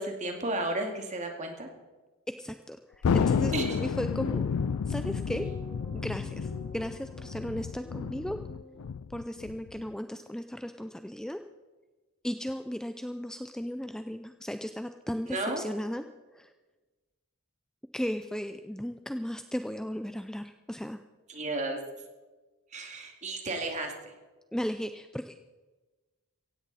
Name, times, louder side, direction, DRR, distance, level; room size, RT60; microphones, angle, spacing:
voice 1, 0.0-1.7 3.5-3.8 15.3-15.6 21.3-21.8 22.7-24.1, right 2 dB, 35° right, 3 dB, 2.2 m, -33 dB
voice 2, 2.4-4.4 4.9-5.5 5.9-8.4 9.1-11.4 12.2-16.0 16.3-16.5 17.9-21.0 24.5-25.4, equal, 5° left, 8 dB, 0.4 m, -35 dB
sound 1, 2.9-8.8, left 2 dB, 45° left, 5.2 m, -49 dB
Thunder, 3.0-9.9, left 6 dB, 80° left, 0.4 m, -31 dB
16.5 x 16.0 x 4.1 m, 1.2 s
head